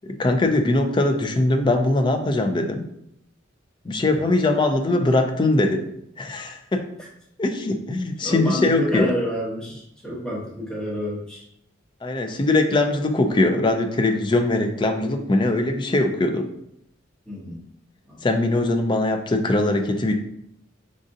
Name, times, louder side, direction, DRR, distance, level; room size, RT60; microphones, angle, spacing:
voice 1, 0.0-2.9 3.9-5.9 6.2-6.8 7.4-9.1 12.0-16.4 18.2-20.1, left 2 dB, 25° left, 5 dB, 0.3 m, -21 dB
voice 2, 8.2-11.5 12.3-12.4 17.3-17.6 18.0-18.2, equal, 5° left, -6 dB, 0.9 m, -29 dB
5.0 x 2.5 x 2.6 m, 0.74 s
head